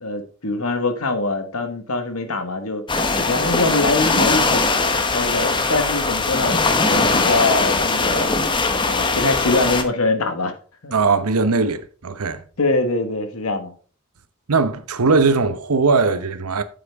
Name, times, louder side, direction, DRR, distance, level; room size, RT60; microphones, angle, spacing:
voice 1, 0.0-2.9 3.2-4.6 5.1-8.3 8.8-10.5 10.8-10.9 12.6-13.7, left 2 dB, 80° left, 1.4 m, -23 dB
sound 1, 2.9-9.8, left 3 dB, 20° left, 0.8 m, -20 dB
voice 2, 10.9-12.4 14.5-16.6, right 4 dB, 85° right, 0.9 m, -19 dB
8.4 x 7.6 x 3.5 m
head